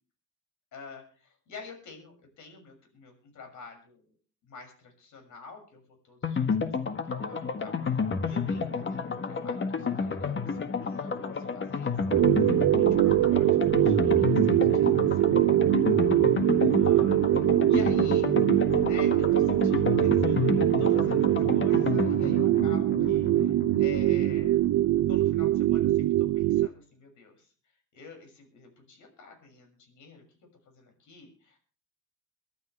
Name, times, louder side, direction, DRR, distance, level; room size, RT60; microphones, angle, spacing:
voice 1, 0.7-1.0 1.5-4.0 4.4-12.2 12.7-15.5 16.7-18.3 18.8-24.6 25.1-27.5 27.9-30.2 30.6-31.6, left 5 dB, 75° left, 4 dB, 6.7 m, -48 dB
sound 1, 6.2-24.8 25.1-25.2 25.5-25.6, left 5 dB, 40° left, 1.7 m, -31 dB
sound 2, 12.1-26.7, right 13 dB, 65° right, 0.6 m, -23 dB
24.0 x 12.0 x 3.4 m, 0.41 s
cardioid pair, 90°, 30 cm